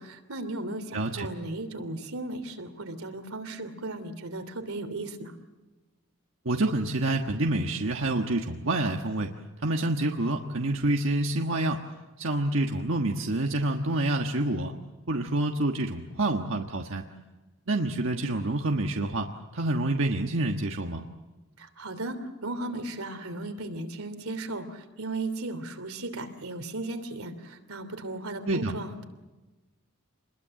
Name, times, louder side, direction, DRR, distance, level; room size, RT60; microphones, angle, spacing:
voice 1, 0.0-5.3 21.6-29.0, right 2 dB, 85° right, 8 dB, 3.0 m, -36 dB
voice 2, 0.9-1.3 6.4-9.3 9.6-11.8 12.2-14.7 15.1-17.0 17.7-21.0 28.5-28.7, right 2 dB, 60° right, 2 dB, 1.5 m, -27 dB
27.5 x 21.5 x 7.7 m, 1.2 s
head